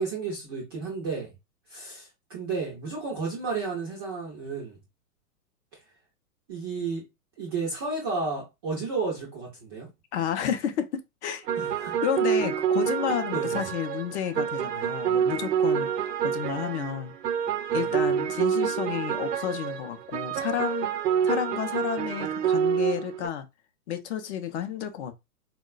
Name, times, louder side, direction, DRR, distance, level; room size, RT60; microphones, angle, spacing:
voice 1, 0.0-1.3 1.7-4.8 6.5-7.0 7.4-9.9 11.6-12.0 13.3-13.6 17.7-18.0, right 4 dB, 20° right, 0.3 m, -32 dB
voice 2, 10.1-11.5 12.0-15.9 16.2-17.1 17.7-20.9 21.2-23.5 23.9-25.1, left 9 dB, 50° left, 0.5 m, -31 dB
sound 1, 11.5-23.3, right 8 dB, 80° right, 0.6 m, -27 dB
3.9 x 2.1 x 2.3 m
hypercardioid pair, 120°, 47 cm